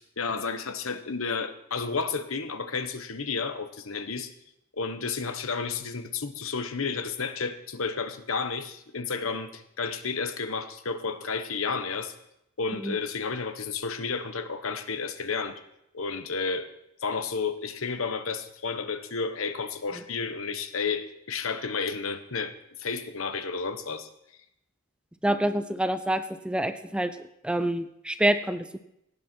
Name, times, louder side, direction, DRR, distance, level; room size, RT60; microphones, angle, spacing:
voice 1, 0.0-4.3 4.7-12.1 12.6-15.6 15.9-16.7 17.0-24.1, left 5 dB, 80° left, 10 dB, 1.1 m, -32 dB
voice 2, 25.2-27.1 27.4-28.8, right 1 dB, 5° right, 10 dB, 0.5 m, -27 dB
17.0 x 9.6 x 4.5 m, 0.80 s
head